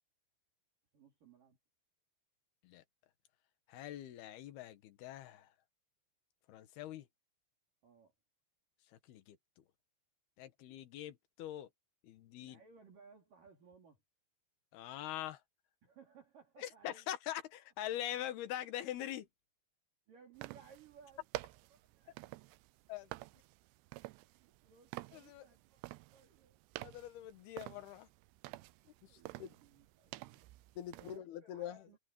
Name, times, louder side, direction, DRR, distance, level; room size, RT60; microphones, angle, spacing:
voice 1, 0.9-1.6 7.8-8.1 12.4-14.0 15.8-17.1 20.1-22.4 24.2-25.8 26.1-26.6 29.0-30.5 30.9-32.0, right 6 dB, 50° right, 4.8 m, -62 dB
voice 2, 3.7-5.5 6.5-7.1 8.9-9.4 10.4-11.7 12.0-12.6 14.7-15.4 16.6-19.3 22.9-23.1 25.1-25.4 26.8-28.1 29.0-29.5 30.8-31.8, left 12 dB, 65° left, 3.1 m, -44 dB
sound 1, 20.4-31.2, right 20 dB, 80° right, 2.6 m, -50 dB
omnidirectional pair, 5.4 m